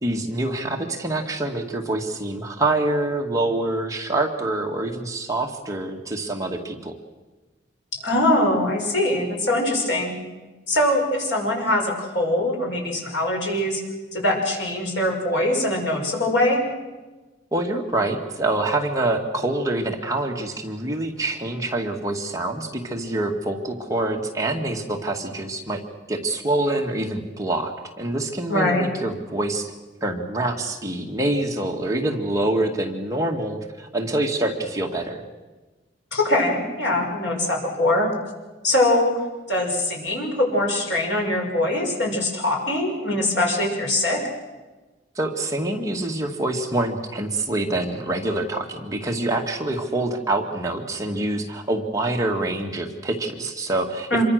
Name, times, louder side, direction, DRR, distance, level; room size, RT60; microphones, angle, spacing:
voice 1, 0.0-6.9 17.5-25.8 26.1-29.7 30.0-35.2 45.2-54.2, right 2 dB, 20° right, 1 dB, 1.9 m, -26 dB
voice 2, 7.9-10.2 10.7-13.8 14.1-16.6 28.5-28.9 36.1-38.1 38.6-39.2 39.5-44.2 54.1-54.2, left 1 dB, 80° left, 0 dB, 6.2 m, -22 dB
27.0 x 23.0 x 6.5 m, 1.2 s
head